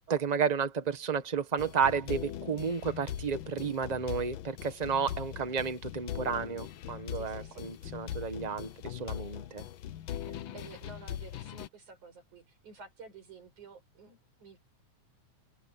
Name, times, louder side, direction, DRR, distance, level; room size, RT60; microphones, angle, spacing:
voice 1, 0.1-9.6, right 6 dB, 35° right, 0.6 m, -32 dB
sound 1, 1.6-11.7, left 11 dB, 70° left, 1.2 m, -41 dB
voice 2, 7.1-7.6 10.5-14.6, right 4 dB, 85° right, 8.7 m, -51 dB
omnidirectional pair, 3.3 m